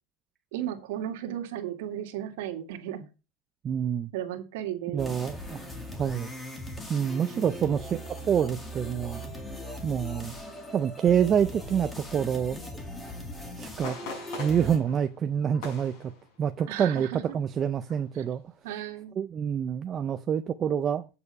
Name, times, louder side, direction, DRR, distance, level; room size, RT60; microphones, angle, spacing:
voice 1, 0.5-3.1 4.1-5.2 7.3-7.8 16.7-17.4 18.6-19.1, right 11 dB, 65° right, 1.9 m, -35 dB
voice 2, 3.6-4.1 4.9-6.3 6.9-9.2 9.8-10.4 10.7-12.6 13.6-14.0 14.3-16.1 16.4-18.4 19.2-21.1, right 8 dB, 20° right, 0.4 m, -27 dB
sound 1, 5.0-14.8, left 1 dB, 10° left, 1.7 m, -40 dB
sound 2, 13.8-16.8 17.2-17.4 17.9-18.2 18.7-18.8, left 3 dB, 50° left, 6.2 m, -42 dB
8.6 x 6.8 x 5.4 m
supercardioid pair, 170°, 0 cm